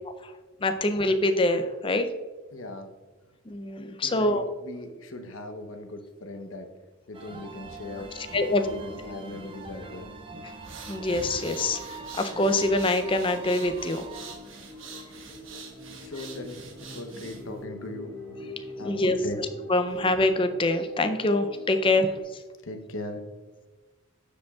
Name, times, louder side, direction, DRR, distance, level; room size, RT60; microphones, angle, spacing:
voice 1, 0.6-2.1 3.5-4.4 8.2-8.7 10.9-11.8 12.2-14.0 18.8-19.2 19.7-22.1, left 2 dB, 25° left, 8 dB, 0.4 m, -24 dB
voice 2, 2.5-2.9 4.0-6.7 7.1-8.1 8.5-10.1 10.4-10.5 15.9-18.1 18.8-19.4 22.6-23.2, left 2 dB, 70° left, 6 dB, 0.9 m, -39 dB
sound 1, 7.1-14.4, right 3 dB, 25° right, 0.6 m, -43 dB
sound 2, 7.9-22.2, left 2 dB, 5° left, 1.0 m, -44 dB
sound 3, 10.5-17.6, right 5 dB, 70° right, 1.1 m, -45 dB
13.0 x 5.1 x 2.4 m, 1.3 s
head